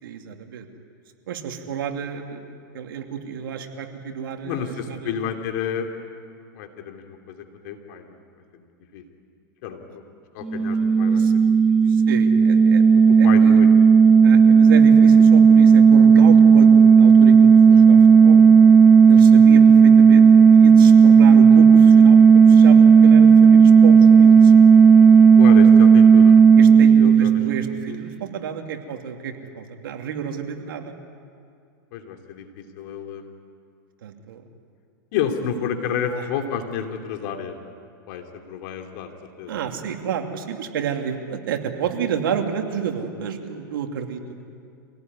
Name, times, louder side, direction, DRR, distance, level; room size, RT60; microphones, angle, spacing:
voice 1, 0.0-0.7 1.3-5.1 11.1-11.3 11.9-13.6 14.2-18.4 19.1-20.3 20.5-24.5 26.6-31.0 34.0-34.4 36.1-36.3 39.5-44.4, right 7 dB, 80° right, 4 dB, 2.7 m, -31 dB
voice 2, 4.4-5.9 6.5-8.2 8.6-9.0 9.6-10.0 10.3-11.6 13.2-13.7 19.4-19.5 25.4-26.4 26.9-27.4 27.9-28.0 31.9-33.3 35.1-37.6 38.1-39.1 39.4-39.6, left 8 dB, 55° left, 4 dB, 2.9 m, -30 dB
sound 1, 10.4-27.9, right 6 dB, 5° right, 0.6 m, -11 dB
26.0 x 18.0 x 9.8 m, 2.3 s
supercardioid pair, 130°, 12 cm